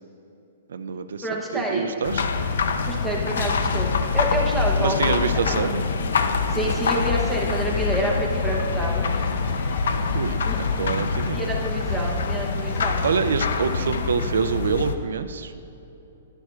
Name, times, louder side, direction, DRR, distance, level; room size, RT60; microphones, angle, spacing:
voice 1, 0.7-1.3 1.5-2.2 4.8-5.8 10.1-11.5 13.0-15.5, right 6 dB, 90° right, 10 dB, 0.4 m, -26 dB
voice 2, 1.2-1.9 2.8-5.6 6.5-9.0 10.4-10.6 11.3-13.0, right 1 dB, ahead, -5 dB, 0.8 m, -28 dB
sound 1, 2.0-14.9, left 4 dB, 80° left, 0.5 m, -25 dB
sound 2, 6.7-13.9, left 4 dB, 35° left, 0.6 m, -42 dB
11.0 x 10.5 x 2.4 m, 2.9 s
hypercardioid pair, 170°, 0 cm